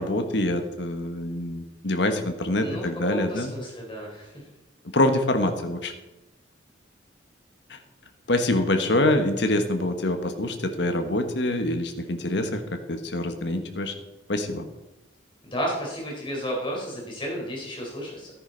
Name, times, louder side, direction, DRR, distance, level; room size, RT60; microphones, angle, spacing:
voice 1, 0.0-3.5 4.9-5.9 7.7-7.8 8.3-13.9 14.3-14.6, left 1 dB, 65° left, 7 dB, 1.3 m, -25 dB
voice 2, 2.6-4.3 15.4-18.3, equal, 25° left, -2 dB, 3.9 m, -32 dB
13.5 x 10.0 x 3.9 m, 1.0 s
head